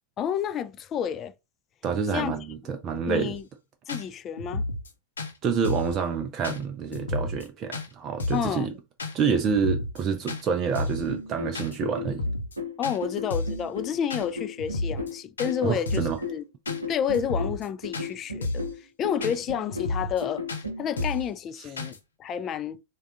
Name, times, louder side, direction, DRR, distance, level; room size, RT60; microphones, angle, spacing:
voice 1, 0.2-1.3 2.1-2.4 3.1-3.4 3.9-4.6 8.3-8.7 12.8-16.4 16.9-18.7 19.0-20.5 20.8-22.8, left 8 dB, 30° left, 0.3 m, -30 dB
voice 2, 1.8-3.3 5.4-8.7 9.1-12.2 15.6-16.2, right 6 dB, 30° right, 0.4 m, -27 dB
sound 1, 3.3-3.4 3.9-4.0 4.4-4.9 5.2-5.3 5.6-6.0 6.4-6.6 6.9-7.5 7.7-7.9 8.2-8.5 9.0-9.1 9.5-10.0 10.3-10.4 10.8-11.1 11.5-11.8 12.0-12.6 12.8-13.0 13.3-13.6 14.1-14.3 14.6-15.1 15.4-15.5 15.9-16.2 16.7-16.8 17.1-17.7 17.9-18.1 18.4-18.7 19.2-19.4 19.7-20.2 20.5-20.6 21.0-21.3 21.8-22.0, left 2 dB, 70° left, 0.7 m, -31 dB
sound 2, 11.1-21.0, left 3 dB, 85° right, 0.7 m, -35 dB
3.5 x 2.3 x 3.5 m
figure-of-eight pair, 90°, 0 cm